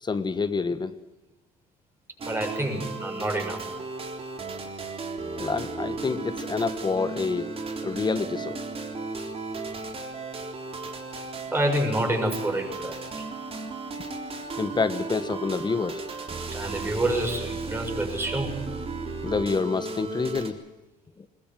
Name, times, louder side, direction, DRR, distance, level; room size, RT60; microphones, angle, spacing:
voice 1, 0.0-0.9 5.3-7.5 7.8-8.6 14.6-16.0 19.2-20.6, left 4 dB, 25° left, 12 dB, 1.3 m, -27 dB
sound 1, 2.2-20.5, right 3 dB, 35° right, 3.7 m, -35 dB
voice 2, 2.3-3.6 11.5-13.0 16.5-18.6, right 1 dB, 15° right, 3 dB, 6.5 m, -28 dB
21.5 x 21.5 x 7.5 m, 1.0 s
cardioid pair, 110°, 17 cm